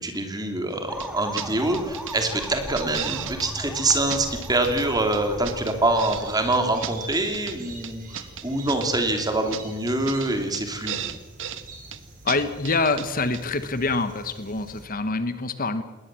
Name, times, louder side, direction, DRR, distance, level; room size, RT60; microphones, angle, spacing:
voice 1, 0.0-11.1, right 2 dB, 20° right, 5 dB, 3.0 m, -25 dB
sound 1, 0.9-7.2, equal, 5° right, 1.7 m, -39 dB
sound 2, 0.9-14.8, right 2 dB, 45° right, 6.9 m, -43 dB
sound 3, 1.0-1.1 1.4-1.5 1.7-2.2 2.4-3.5 3.8-3.9 4.1-4.9 5.1-6.2 6.5-7.6 7.8-8.9 9.2-9.3 9.5-9.6 9.9-10.3 10.5-10.6 10.9-11.6 11.9-12.0 12.3-12.4 12.6-13.1 13.3-13.4, right 9 dB, 65° right, 1.4 m, -34 dB
voice 2, 12.2-15.8, left 3 dB, 45° left, 11 dB, 1.2 m, -25 dB
21.0 x 18.5 x 7.6 m, 1.2 s
head